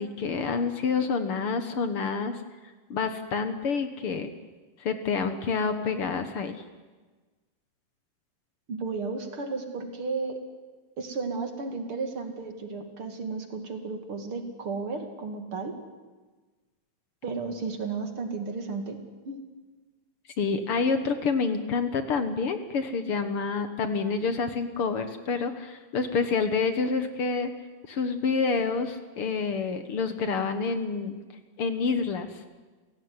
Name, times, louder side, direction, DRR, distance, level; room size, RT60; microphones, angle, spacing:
voice 1, 0.0-2.4 2.9-4.3 4.8-6.6 20.4-27.5 27.9-31.2 31.6-32.4, left 5 dB, 55° left, 9 dB, 2.0 m, -28 dB
voice 2, 8.7-10.4 11.0-15.7 17.2-19.0 19.2-19.4, right 4 dB, 45° right, 5 dB, 3.1 m, -33 dB
29.0 x 17.0 x 9.7 m, 1.3 s
omnidirectional pair, 3.4 m